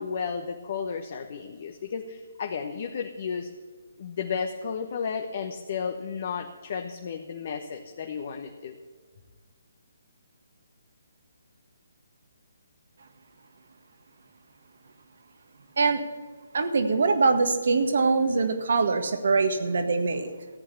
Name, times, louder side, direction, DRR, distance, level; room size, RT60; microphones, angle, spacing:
voice 1, 0.0-3.5 4.0-8.8, left 6 dB, 45° left, 4 dB, 1.1 m, -33 dB
voice 2, 16.5-20.3, right 4 dB, 60° right, 8 dB, 1.7 m, -23 dB
14.5 x 8.8 x 7.1 m, 1.5 s
figure-of-eight pair, 140°, 0 cm